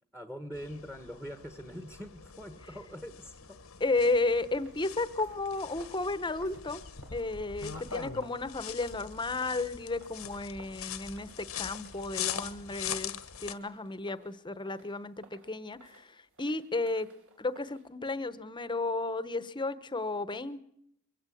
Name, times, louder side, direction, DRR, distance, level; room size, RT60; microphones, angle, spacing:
voice 1, 0.1-3.4 7.7-8.1, equal, 5° right, 9 dB, 1.3 m, -43 dB
sound 1, 0.5-13.5, left 9 dB, 80° left, 1.3 m, -42 dB
voice 2, 3.8-6.8 7.1-17.1 17.4-20.6, left 3 dB, 20° left, 14 dB, 1.0 m, -33 dB
sound 2, 3.8-17.9, right 2 dB, 65° right, 4.4 m, -58 dB
23.5 x 15.5 x 8.5 m, 0.75 s
head